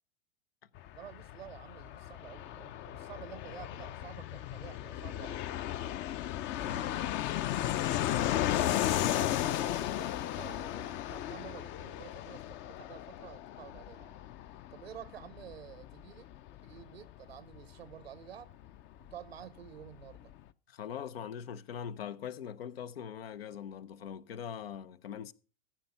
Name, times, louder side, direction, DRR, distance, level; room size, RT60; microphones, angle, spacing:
Fixed-wing aircraft airplane, 0.8-19.1 19.4-19.5 19.7-20.4, left 12 dB, 40° left, 0.6 m, -35 dB
voice 1, 0.9-6.0 6.6-7.1 7.8-14.2 14.7-16.3 16.6-18.5 19.0-20.3, right 10 dB, 85° right, 0.9 m, -51 dB
voice 2, 6.6-7.1 20.7-25.3, left 8 dB, 80° left, 0.7 m, -42 dB
14.5 x 5.7 x 5.6 m
hypercardioid pair, 90°, 30 cm